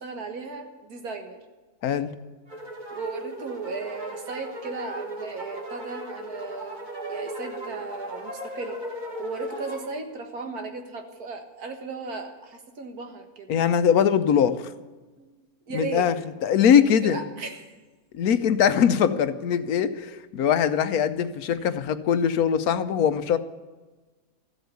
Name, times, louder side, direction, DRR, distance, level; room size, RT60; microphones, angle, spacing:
voice 1, 0.0-1.4 2.9-8.8 9.2-13.5 15.2-16.1 16.7-17.8, right 4 dB, 85° right, 5 dB, 2.1 m, -36 dB
sound 1, 2.5-9.9, right 1 dB, 30° right, 2.1 m, -37 dB
voice 2, 13.5-14.6 15.7-16.1 16.4-17.2 18.1-23.4, left 8 dB, 80° left, 12 dB, 1.3 m, -21 dB
14.0 x 8.1 x 9.6 m, 1.3 s
omnidirectional pair, 1.6 m